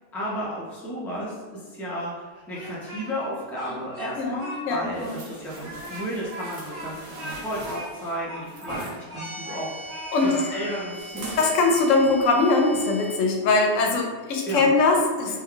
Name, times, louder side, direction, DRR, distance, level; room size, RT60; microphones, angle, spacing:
voice 1, 0.1-9.9 10.2-11.4 14.5-14.7, equal, ahead, -7 dB, 0.4 m, -33 dB
Speech, 2.3-3.3 3.6-4.6 4.9-5.0 5.5-9.6 9.9-10.8, right 1 dB, 40° right, 0.6 m, -39 dB
voice 2, 4.7-5.2 10.1-10.4 11.4-15.4, left 3 dB, 80° left, 1 dB, 0.9 m, -21 dB
sound 1, 4.9-9.0 10.9-11.6 12.1-12.2, right 2 dB, 85° right, 1.1 m, -41 dB
sound 2, 9.1-13.2, equal, 50° left, 1.1 m, -40 dB
3.0 x 2.2 x 3.7 m, 1.4 s
omnidirectional pair, 1.3 m